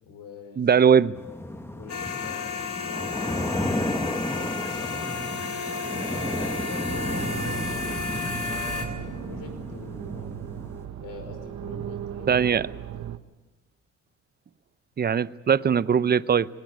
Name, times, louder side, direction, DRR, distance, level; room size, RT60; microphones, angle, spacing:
voice 1, 0.0-0.7 1.7-3.1 4.3-5.6 6.7-8.0 8.4-10.3 11.0-12.5 13.0-13.1, left 5 dB, 85° left, 5.4 m, -43 dB
voice 2, 0.6-1.1 12.3-12.7 15.0-16.5, right 7 dB, 30° right, 0.7 m, -20 dB
sound 1, 1.1-10.8, left 1 dB, 10° left, 1.6 m, -33 dB
sound 2, 1.9-8.8, left 4 dB, 65° left, 3.6 m, -32 dB
sound 3, 6.9-13.2, right 10 dB, 65° right, 1.1 m, -37 dB
21.5 x 19.0 x 9.5 m
cardioid pair, 90°, 30 cm